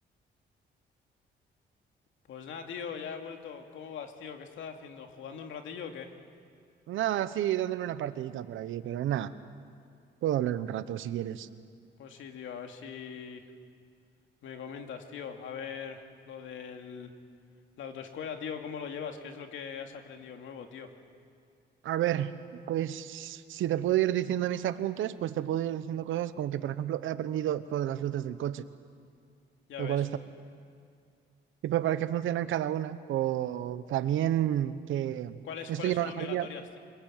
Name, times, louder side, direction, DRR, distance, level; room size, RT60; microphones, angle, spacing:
voice 1, 2.3-6.1 12.0-13.4 14.4-17.1 17.8-20.9 29.7-30.0 35.4-36.8, left 7 dB, 75° left, 4 dB, 2.5 m, -41 dB
voice 2, 6.9-9.3 10.2-11.5 21.8-22.3 22.7-28.7 29.8-30.2 31.6-35.4 35.7-36.5, right 12 dB, 80° right, 13 dB, 1.1 m, -30 dB
25.5 x 21.0 x 9.1 m, 2.3 s
cardioid pair, 90°, 20 cm